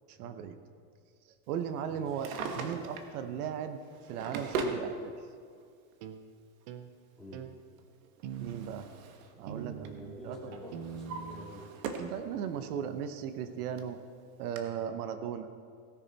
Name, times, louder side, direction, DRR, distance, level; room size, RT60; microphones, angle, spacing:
voice 1, 0.1-0.6 1.5-3.8 4.1-5.1 8.4-8.9 9.4-9.8 10.2-10.5 12.1-14.0 14.4-15.5, right 8 dB, 75° right, 9 dB, 1.0 m, -37 dB
Drawer open or close, 2.0-3.2 3.9-4.8 5.9-6.0 7.8-9.3 9.6-10.0 10.5-12.2 12.6-12.7 13.4-13.5 13.8-13.9 14.6-14.7, right 4 dB, 60° right, 1.4 m, -39 dB
sound 1, 6.0-6.2 6.7-6.9 7.3-7.5 8.2-8.9 9.5-10.2 10.7-11.5 12.0-12.1, right 8 dB, 30° right, 0.4 m, -42 dB
voice 2, 7.2-7.5 9.3-11.7, equal, ahead, -7 dB, 2.4 m, -48 dB
17.5 x 10.5 x 4.1 m, 2.2 s
supercardioid pair, 170°, 45 cm